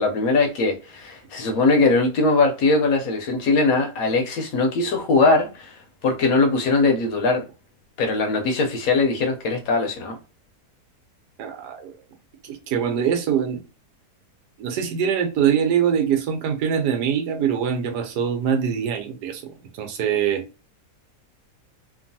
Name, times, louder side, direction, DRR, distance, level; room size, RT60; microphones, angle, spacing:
voice 1, 0.0-5.8 6.0-7.4 8.0-10.2, left 3 dB, 70° left, 0.9 m, -20 dB
voice 2, 11.4-11.9 12.4-13.6 14.6-19.5 19.8-20.4, right 8 dB, 80° right, 1.2 m, -23 dB
3.0 x 2.3 x 2.6 m
omnidirectional pair, 1.8 m